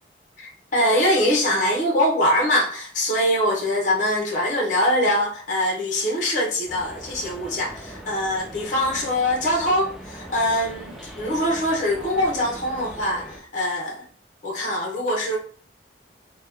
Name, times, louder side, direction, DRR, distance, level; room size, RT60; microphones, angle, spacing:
voice 1, 0.4-14.1 14.4-15.4, left 1 dB, 45° left, 0.9 m, -23 dB
sound 1, 6.7-13.4, right 1 dB, ahead, 0.4 m, -40 dB
2.9 x 2.2 x 3.4 m
head